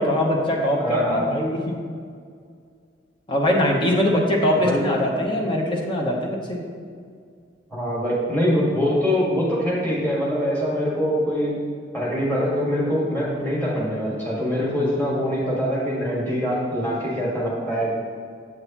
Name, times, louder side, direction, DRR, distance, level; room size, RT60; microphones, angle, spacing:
voice 1, 0.0-1.8 3.3-6.6, left 1 dB, 25° left, -1 dB, 0.9 m, -22 dB
voice 2, 0.8-1.3 4.5-4.8 7.7-11.6 11.9-17.9, equal, 10° left, -6 dB, 1.7 m, -23 dB
7.9 x 6.3 x 2.9 m, 2.2 s
head